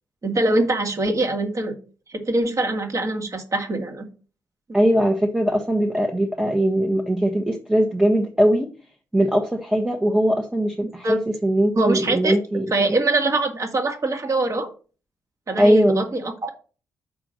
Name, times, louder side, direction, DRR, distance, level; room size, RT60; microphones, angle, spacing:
voice 1, 0.2-1.8 2.1-4.1 11.0-11.2 11.8-12.4 12.7-14.7 15.5-16.5, right 2 dB, 40° right, 4 dB, 2.1 m, -23 dB
voice 2, 4.7-8.7 9.1-13.0 15.6-16.0, equal, 10° right, 3 dB, 1.2 m, -20 dB
6.3 x 4.9 x 6.5 m, 0.37 s
hypercardioid pair, 40°, 8 cm